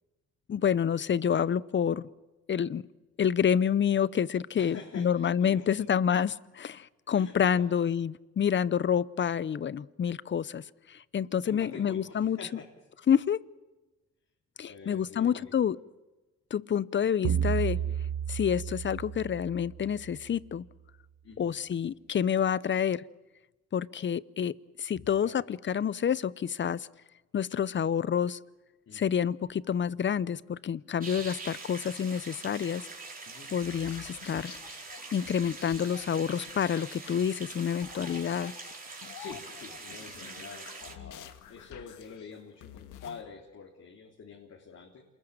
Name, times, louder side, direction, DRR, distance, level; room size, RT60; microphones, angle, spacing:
voice 1, 0.5-2.1 2.5-2.8 3.2-10.6 10.9-12.4 13.1-13.4 14.6-15.8 16.5-17.8 18.3-20.6 21.4-23.0 23.7-24.5 24.8-26.9 27.3-28.4 28.9-32.8 33.5-34.5 35.1-38.5, left 8 dB, 40° left, 20 dB, 0.7 m, -28 dB
voice 2, 4.6-5.7 7.1-7.6 11.5-12.7 14.7-15.5 17.8-18.0 21.2-21.5 25.2-25.4 28.9-29.1 33.2-33.5 39.2-45.1, left 5 dB, 55° left, 0 dB, 3.7 m, -46 dB
sound 1, 17.2-20.0, right 9 dB, 60° right, 1.0 m, -31 dB
sound 2, 31.0-40.9, right 3 dB, 30° right, 4.5 m, -44 dB
sound 3, 33.6-43.2, left 10 dB, 90° left, 1.7 m, -50 dB
28.0 x 21.0 x 7.5 m, 1.1 s
cardioid pair, 90°, 30 cm